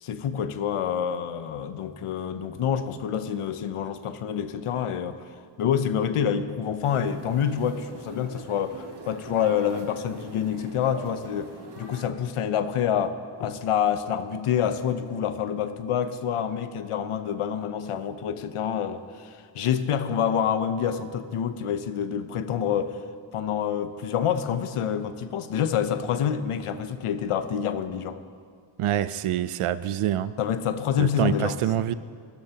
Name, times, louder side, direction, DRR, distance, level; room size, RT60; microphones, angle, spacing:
voice 1, 0.0-5.2 5.6-23.0 23.3-28.2 30.4-31.9, left 8 dB, 85° left, 11 dB, 0.8 m, -27 dB
sound 1, 6.8-12.1, right 3 dB, 55° right, 1.7 m, -43 dB
voice 2, 28.8-30.3 31.0-31.9, right 12 dB, 85° right, 15 dB, 0.6 m, -26 dB
20.5 x 13.0 x 2.9 m, 2.1 s
cardioid pair, 50°, 50 cm